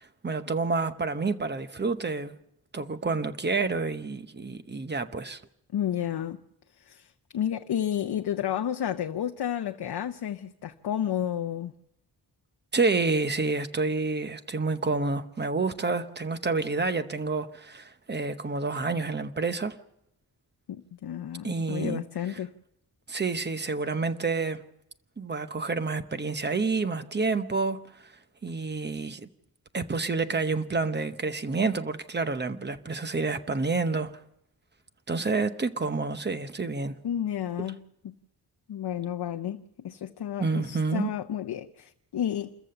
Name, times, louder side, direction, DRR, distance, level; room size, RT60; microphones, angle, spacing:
voice 1, 0.0-2.4 2.7-5.4 12.7-19.8 21.4-22.0 23.1-24.6 25.2-28.1 28.4-29.3 29.7-34.1 35.1-37.0 40.4-41.1, right 4 dB, 25° right, 0.9 m, -29 dB
voice 2, 5.7-6.4 6.7-11.7 20.7-22.5 37.0-37.8 38.0-38.1 38.7-42.5, left 10 dB, 70° left, 0.7 m, -31 dB
28.0 x 14.5 x 6.8 m
wide cardioid pair, 165°, 40 cm